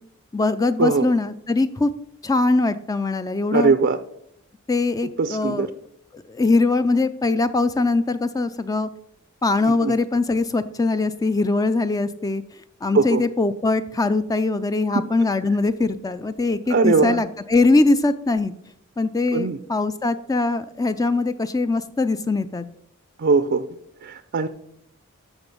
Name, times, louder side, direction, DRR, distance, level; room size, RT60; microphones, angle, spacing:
voice 1, 0.3-1.9 2.2-3.7 4.7-5.7 6.1-8.9 9.4-12.4 12.8-18.5 19.0-22.6, left 3 dB, 15° left, 12 dB, 0.3 m, -22 dB
voice 2, 3.5-4.0 5.2-5.7 9.7-9.9 12.9-13.2 14.9-15.0 16.7-17.2 19.3-19.6 23.2-23.7 24.0-24.5, right 4 dB, 50° right, 10 dB, 0.5 m, -20 dB
13.0 x 4.9 x 5.3 m, 0.75 s
head